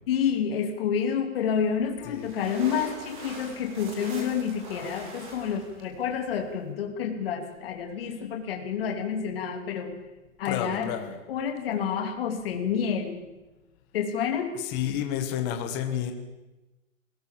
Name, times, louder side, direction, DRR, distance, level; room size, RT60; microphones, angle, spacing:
voice 1, 0.1-10.0 10.4-10.9 11.3-13.2 13.9-14.6, left 7 dB, 45° left, 3 dB, 3.0 m, -29 dB
sound 1, 1.7-6.7, right 2 dB, 35° right, 4.3 m, -44 dB
voice 2, 10.4-11.2 14.6-16.1, left 10 dB, 20° left, 6 dB, 1.5 m, -30 dB
21.5 x 18.5 x 7.4 m, 1.1 s
hypercardioid pair, 180°, 40 cm